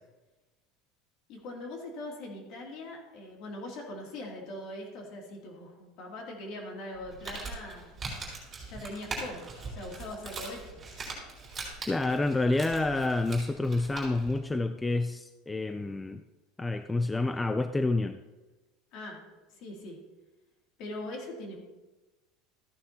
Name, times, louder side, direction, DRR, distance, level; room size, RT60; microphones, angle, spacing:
voice 1, 1.3-7.9 8.6-10.8 18.9-20.0 20.8-21.6, left 1 dB, 50° left, 0 dB, 2.6 m, -41 dB
Crumpling crinkling, 7.0-14.4, right 3 dB, 20° right, 3.7 m, -41 dB
voice 2, 11.9-16.2 16.6-18.2, left 2 dB, 10° left, 9 dB, 0.3 m, -28 dB
14.0 x 9.7 x 2.8 m, 1.1 s
cardioid pair, 155°, 0 cm